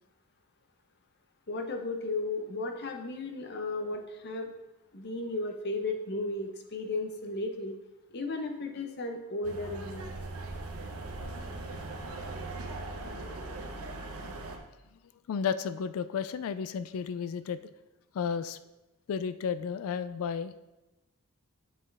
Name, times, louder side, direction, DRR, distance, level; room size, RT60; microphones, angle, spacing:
voice 1, 1.5-4.5 4.9-7.8 8.1-10.1, left 2 dB, 50° left, 5 dB, 0.8 m, -34 dB
sound 1, 9.4-14.6, right 2 dB, 85° right, 1.0 m, -39 dB
voice 2, 15.3-17.6 18.1-18.6 19.1-20.5, left 6 dB, 70° left, 13 dB, 0.3 m, -32 dB
7.5 x 6.3 x 3.3 m, 1.0 s
head